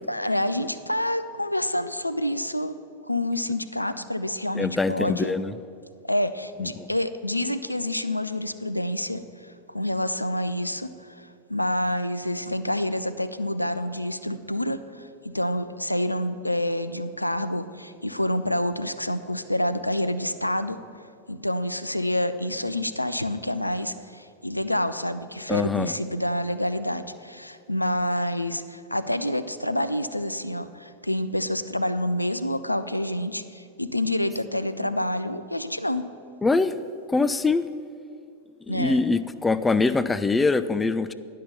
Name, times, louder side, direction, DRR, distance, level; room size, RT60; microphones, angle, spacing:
voice 1, 0.1-2.7 3.1-5.3 6.0-15.1 15.3-20.8 21.3-36.1 38.7-39.0, left 1 dB, 85° left, 11 dB, 0.3 m, -28 dB
voice 2, 4.5-5.5 6.6-6.9 25.5-25.9 36.4-36.7 37.1-37.6 38.7-41.1, left 3 dB, 10° left, 13 dB, 0.3 m, -23 dB
10.0 x 5.5 x 6.8 m, 2.4 s
figure-of-eight pair, 90°, 0 cm